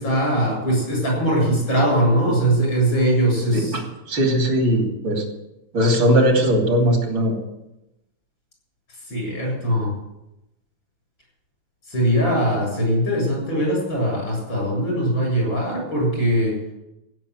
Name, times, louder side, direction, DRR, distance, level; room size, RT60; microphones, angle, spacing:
voice 1, 0.0-3.8 9.1-9.9 11.9-16.6, equal, 75° left, -2 dB, 8.7 m, -21 dB
voice 2, 3.5-5.2 5.7-7.4, equal, 75° right, 1 dB, 3.7 m, -19 dB
15.5 x 7.4 x 9.7 m, 0.90 s
omnidirectional pair, 2.1 m